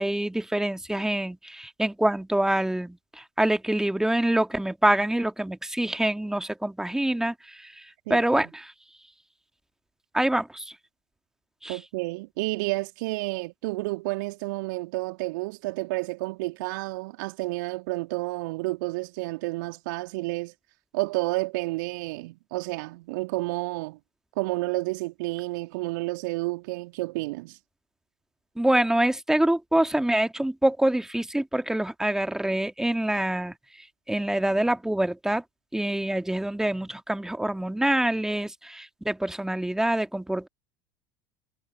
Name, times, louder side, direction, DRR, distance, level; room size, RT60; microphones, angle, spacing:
voice 1, 0.0-7.7 8.1-8.7 10.1-10.7 11.6-11.8 28.6-33.5 34.1-35.4 35.7-40.5, right 1 dB, 5° right, 2.0 m, -25 dB
voice 2, 8.1-8.5 11.7-20.5 20.9-24.0 24.4-27.6, right 23 dB, 60° right, 3.5 m, -30 dB
figure-of-eight pair, 70°, 12 cm